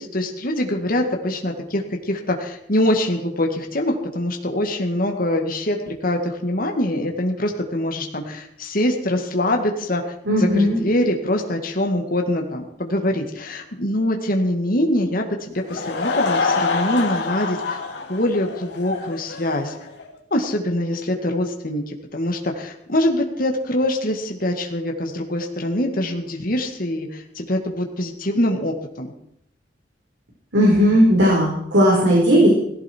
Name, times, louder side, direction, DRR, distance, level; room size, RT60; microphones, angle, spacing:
voice 1, 0.0-10.0 10.4-17.8 18.1-19.7 20.3-29.1, left 1 dB, 50° left, 2 dB, 2.2 m, -24 dB
voice 2, 10.3-10.8 30.5-32.5, equal, 90° right, -3 dB, 4.7 m, -16 dB
Laughter / Crowd, 15.5-20.1, left 4 dB, 70° left, 2.8 m, -26 dB
18.0 x 15.5 x 4.7 m, 0.73 s
head